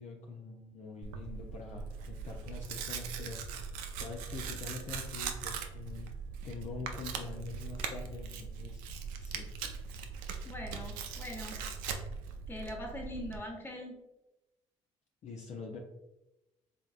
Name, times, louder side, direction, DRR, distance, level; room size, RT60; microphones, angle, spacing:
voice 1, 0.0-3.6 3.9-6.1 6.4-8.8 9.2-9.5 15.2-15.8, left 4 dB, 55° left, 0 dB, 0.6 m, -45 dB
Tearing, 1.0-13.4, right 6 dB, 80° right, 0.5 m, -40 dB
voice 2, 10.4-11.6 12.5-14.0, left 1 dB, 15° left, 1 dB, 1.1 m, -42 dB
3.7 x 3.4 x 2.5 m, 0.96 s
hypercardioid pair, 60°, 15 cm